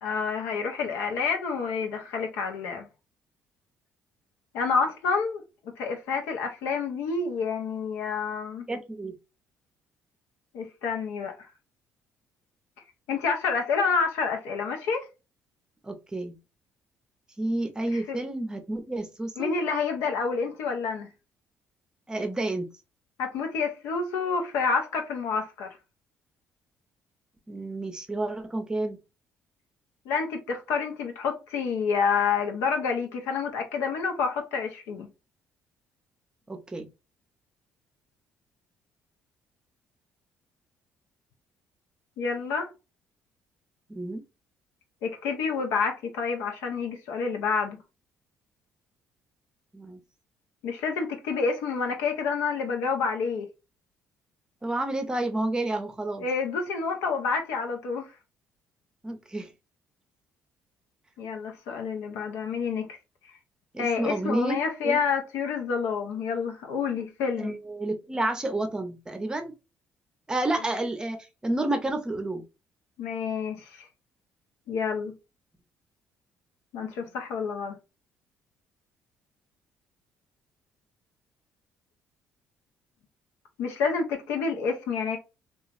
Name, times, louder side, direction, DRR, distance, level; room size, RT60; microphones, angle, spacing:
voice 1, 0.0-2.9 4.5-5.4 5.8-8.7 10.5-11.3 13.1-15.1 17.9-18.2 19.4-21.1 23.2-25.8 30.1-35.1 42.2-42.7 45.0-47.8 50.6-53.5 56.2-58.1 61.2-63.0 63.8-67.6 73.0-73.9 74.7-75.1 76.7-77.8 83.6-85.2, left 5 dB, 90° left, 0.7 m, -28 dB
voice 2, 8.7-9.1 15.8-16.3 17.4-19.5 22.1-22.7 27.5-29.0 36.5-36.9 43.9-44.2 49.7-50.0 54.6-56.3 59.0-59.5 63.7-64.6 64.8-65.0 67.4-69.5 70.3-71.2 71.4-72.4, right 2 dB, 15° right, 0.6 m, -30 dB
2.9 x 2.3 x 2.4 m
cardioid pair, 100°, 5 cm